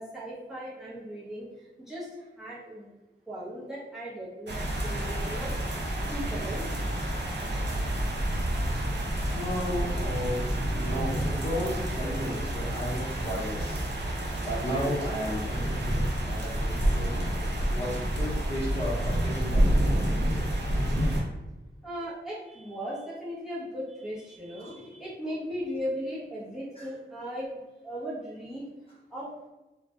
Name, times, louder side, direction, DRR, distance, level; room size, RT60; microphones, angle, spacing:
voice 1, 0.0-2.9 3.3-5.5 6.0-6.7 21.8-27.6 27.8-28.6 29.1-29.3, equal, ahead, -6 dB, 0.6 m, -37 dB
sound 1, 4.5-21.2, right 1 dB, 65° right, 0.5 m, -29 dB
voice 2, 9.2-13.9 14.4-17.1 17.7-19.7 24.6-25.0 26.8-26.9, equal, 30° left, -6 dB, 0.8 m, -34 dB
2.1 x 2.1 x 2.8 m, 1.1 s
wide cardioid pair, 85°, 19 cm